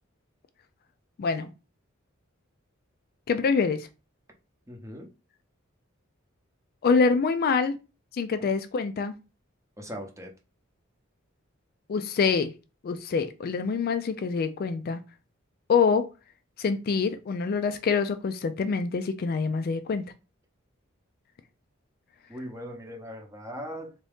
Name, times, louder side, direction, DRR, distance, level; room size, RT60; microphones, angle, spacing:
voice 1, 3.3-3.9 6.8-7.8 8.1-9.1 11.9-12.5 12.8-15.0 15.7-16.1 16.6-20.0, left 5 dB, 45° left, 0.3 m, -25 dB
voice 2, 4.7-5.1 9.8-10.3 22.3-23.9, equal, 15° right, 0.8 m, -39 dB
3.6 x 2.7 x 3.4 m
head